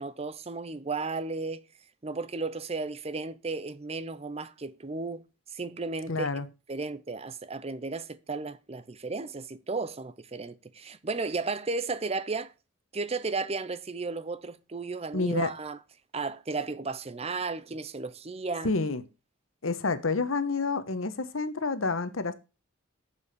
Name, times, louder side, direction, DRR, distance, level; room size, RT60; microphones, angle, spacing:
voice 1, 0.0-1.6 2.0-5.2 5.5-6.3 6.7-12.5 12.9-15.8 16.1-18.7, right 3 dB, 30° right, 0.6 m, -34 dB
voice 2, 6.1-6.5 15.1-15.5 18.6-19.0 19.6-22.3, left 3 dB, 80° left, 1.1 m, -29 dB
7.2 x 7.1 x 6.6 m
head